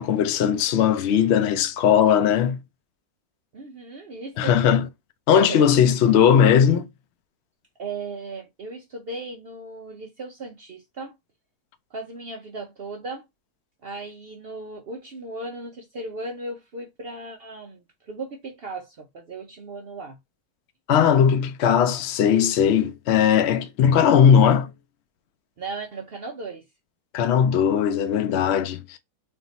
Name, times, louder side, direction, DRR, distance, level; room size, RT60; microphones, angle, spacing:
voice 1, 0.0-2.6 4.4-4.9 5.3-6.9 20.9-24.7 27.1-29.0, left 8 dB, 70° left, 0.6 m, -18 dB
voice 2, 3.5-4.6 5.4-5.6 7.8-11.2 11.9-13.3 13.8-20.2 25.6-26.7, right 3 dB, 65° right, 0.6 m, -36 dB
3.6 x 2.6 x 4.0 m
omnidirectional pair, 1.7 m